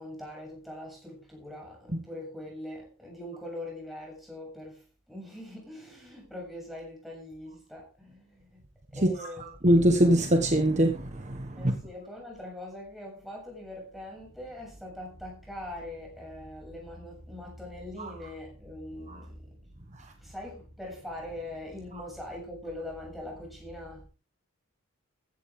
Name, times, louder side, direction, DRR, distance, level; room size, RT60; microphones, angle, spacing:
voice 1, 0.0-8.6 8.9-9.6 11.6-24.1, left 1 dB, ahead, 7.6 m, -42 dB
voice 2, 9.6-10.9 11.3-11.4, right 1 dB, 35° right, 1.4 m, -21 dB
15.5 x 11.5 x 3.8 m
head